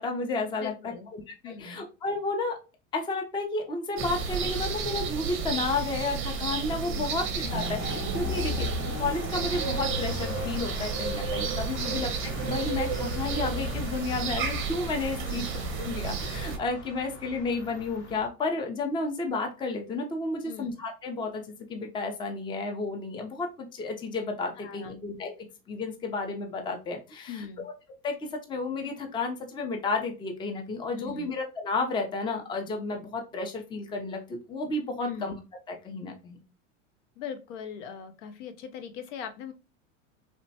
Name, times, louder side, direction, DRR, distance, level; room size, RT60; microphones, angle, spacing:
voice 1, 0.0-2.6 2.9-8.7 9.0-15.5 15.8-25.3 25.7-27.4 28.0-35.3 35.7-36.4, left 3 dB, 15° left, 3 dB, 0.4 m, -32 dB
voice 2, 0.6-1.1 1.4-1.9 6.9-7.3 11.8-12.2 15.2-15.5 20.4-20.7 24.6-25.1 27.3-27.6 31.0-31.3 35.0-35.3 37.2-39.5, left 7 dB, 70° left, 8 dB, 0.6 m, -40 dB
sound 1, 4.0-16.6, right 5 dB, 35° right, 0.6 m, -32 dB
sound 2, 7.5-18.3, left 2 dB, 40° left, 0.8 m, -37 dB
3.1 x 2.1 x 2.6 m, 0.30 s
hypercardioid pair, 105°, 38 cm